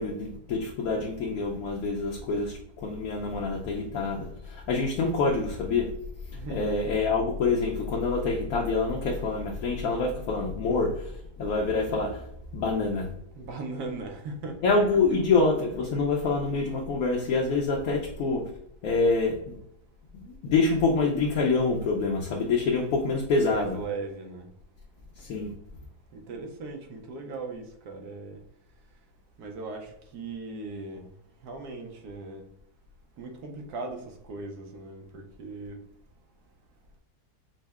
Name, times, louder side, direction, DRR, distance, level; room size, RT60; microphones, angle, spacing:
voice 1, 0.0-5.9 6.3-11.1 11.4-13.1 14.6-18.5 18.8-19.6 20.1-23.8 25.2-25.5, left 3 dB, 70° left, 0.9 m, -26 dB
voice 2, 6.3-6.7 13.4-14.7 15.1-15.2 23.4-24.5 26.1-28.4 29.4-31.0 31.4-32.4 33.2-35.8, right 3 dB, 75° right, 1.2 m, -38 dB
5.3 x 2.1 x 2.3 m
omnidirectional pair, 1.8 m